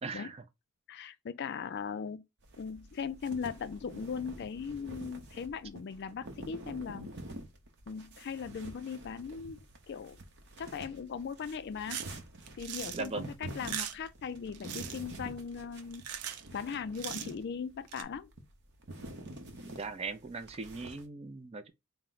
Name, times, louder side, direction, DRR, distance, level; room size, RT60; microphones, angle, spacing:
voice 1, 0.0-0.4 12.9-13.3 19.8-21.7, right 4 dB, 25° right, 0.4 m, -39 dB
voice 2, 0.9-2.2 2.6-7.1 7.9-9.6 9.9-10.2 10.6-12.0 12.6-16.0 16.5-18.3, left 6 dB, 50° left, 0.3 m, -39 dB
sound 1, 2.4-21.0, right 1 dB, 50° right, 0.7 m, -48 dB
sound 2, 11.9-12.1 12.5-13.1 13.5-14.1 14.5-15.0 15.9-16.5 16.7-17.4 17.9-18.0, right 9 dB, 85° right, 0.5 m, -39 dB
4.3 x 2.1 x 3.8 m
head